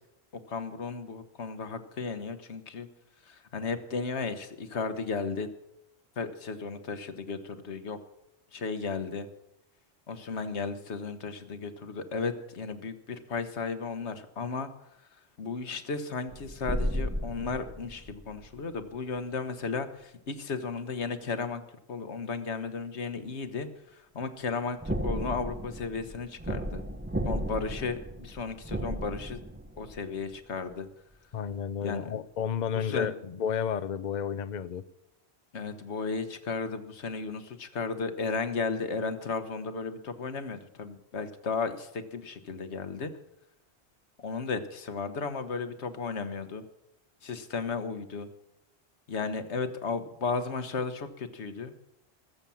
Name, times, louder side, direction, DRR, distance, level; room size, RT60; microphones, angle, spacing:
voice 1, 0.5-2.9 3.3-5.5 6.2-8.0 8.5-9.3 10.1-14.7 15.4-21.6 21.9-23.7 24.1-26.8 27.2-29.4 29.8-30.9 31.8-32.1 32.7-33.1 35.5-43.1 44.2-46.6 47.2-48.3 49.1-51.7, left 4 dB, 90° left, 9 dB, 1.5 m, -34 dB
sound 1, 16.3-18.8 24.8-30.4 30.7-30.8, equal, 10° right, 0.8 m, -34 dB
voice 2, 31.3-34.8, left 7 dB, 50° left, 13 dB, 0.7 m, -32 dB
20.5 x 7.4 x 7.1 m, 0.83 s
omnidirectional pair, 1.1 m